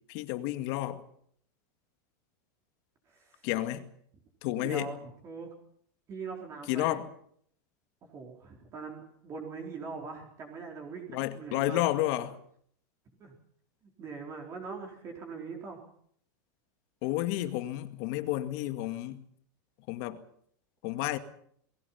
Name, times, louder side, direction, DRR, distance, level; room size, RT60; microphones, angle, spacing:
voice 1, 0.1-1.0 3.4-3.9 4.4-4.9 6.7-7.1 11.1-12.4 17.0-19.2 19.9-20.2 20.8-21.2, left 15 dB, 50° left, 2.1 m, -31 dB
voice 2, 3.1-3.5 4.6-5.5 6.1-7.0 8.1-11.8 13.2-13.3 13.8-15.8, right 4 dB, 30° right, 4.2 m, -42 dB
28.5 x 20.0 x 5.8 m
supercardioid pair, 155°, 11 cm